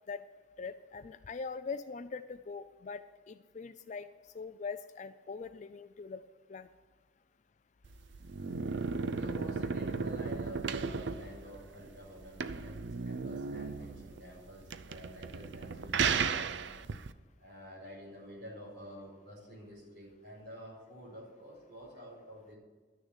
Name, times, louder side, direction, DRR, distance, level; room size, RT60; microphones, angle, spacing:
voice 1, 0.6-4.1 4.3-6.2 6.5-6.7, left 4 dB, 40° left, 11 dB, 0.4 m, -42 dB
sound 1, 7.8-17.1, right 5 dB, 70° right, 0.5 m, -35 dB
voice 2, 8.9-16.6 17.4-22.6, right 1 dB, 50° right, -3 dB, 4.7 m, -48 dB
12.5 x 6.6 x 8.1 m, 1.4 s
head